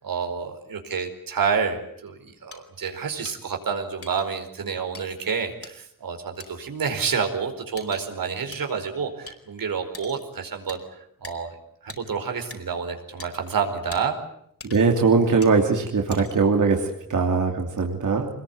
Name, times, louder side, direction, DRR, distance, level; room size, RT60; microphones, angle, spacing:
voice 1, 0.0-10.8 11.2-11.5 11.8-14.2, right 6 dB, 85° right, 5 dB, 4.7 m, -29 dB
sound 1, 2.5-2.6 3.2-3.4 4.0-4.3 4.9-5.0 5.6-5.7 6.4-6.5 7.1-7.2 7.8-8.0 8.5-8.6 9.3-9.4 9.9-10.2 10.7-10.8 11.2-11.4 11.9-12.0 12.5-12.6 13.2-13.3 13.9-14.0 14.6-15.0 15.4-15.6 16.1-16.5, left 3 dB, 45° left, 4.4 m, -41 dB
voice 2, 14.6-18.3, right 4 dB, 65° right, 2 dB, 3.0 m, -21 dB
26.5 x 21.0 x 9.5 m, 0.71 s
wide cardioid pair, 135°, 33 cm